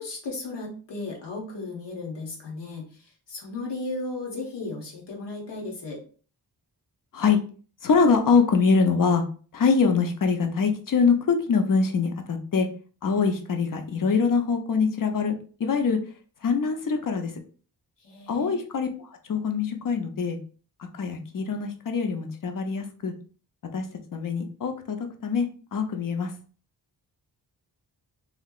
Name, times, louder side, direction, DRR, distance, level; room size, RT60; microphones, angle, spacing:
voice 1, 0.0-3.0 3.3-6.0 18.0-18.6, left 3 dB, 85° left, -1 dB, 1.3 m, -35 dB
voice 2, 7.8-9.2 9.5-12.7 13.0-15.3 15.6-16.0 16.4-17.3 18.3-20.4 20.9-23.1 23.7-23.8 24.1-25.0 25.2-26.3, left 5 dB, 50° left, 6 dB, 0.7 m, -24 dB
3.2 x 2.8 x 2.4 m, 0.40 s
cardioid pair, 85°, 41 cm